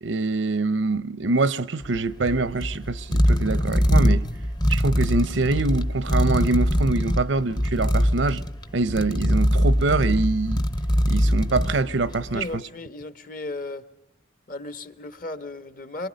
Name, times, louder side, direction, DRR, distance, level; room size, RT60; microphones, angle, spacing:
voice 1, 0.0-4.3 4.7-8.4 8.7-10.6 11.1-12.5, right 3 dB, 80° right, 0.8 m, -24 dB
sound 1, 1.8-12.4, equal, 25° left, 0.8 m, -23 dB
voice 2, 12.3-13.8 14.5-16.1, left 2 dB, 45° left, 1.2 m, -35 dB
27.0 x 23.5 x 5.2 m
head